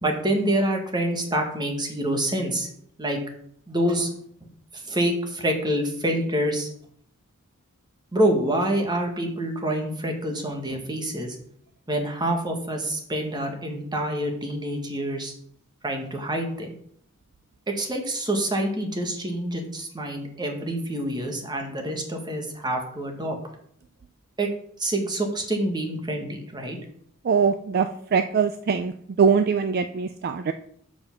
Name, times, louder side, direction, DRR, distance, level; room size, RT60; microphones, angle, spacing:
voice 1, 0.0-2.7 3.0-3.2 3.7-4.1 4.7-6.7 8.1-11.4 11.9-15.3 15.8-16.8 17.7-23.4 24.4-24.5 24.8-26.8, right 1 dB, 20° right, 3 dB, 1.4 m, -26 dB
voice 2, 27.3-27.9 28.1-28.9 29.2-30.5, right 6 dB, 45° right, 9 dB, 0.4 m, -22 dB
7.1 x 5.2 x 5.7 m, 0.65 s
head